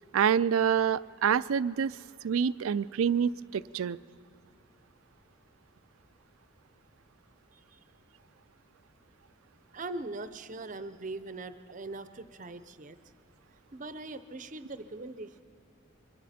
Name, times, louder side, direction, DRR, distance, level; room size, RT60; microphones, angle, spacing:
voice 1, 0.1-1.9 2.2-4.0, right 7 dB, 90° right, 17 dB, 0.4 m, -27 dB
voice 2, 9.7-13.0 13.7-15.4, right 2 dB, 40° right, 12 dB, 0.6 m, -41 dB
26.5 x 23.0 x 4.3 m, 2.7 s
head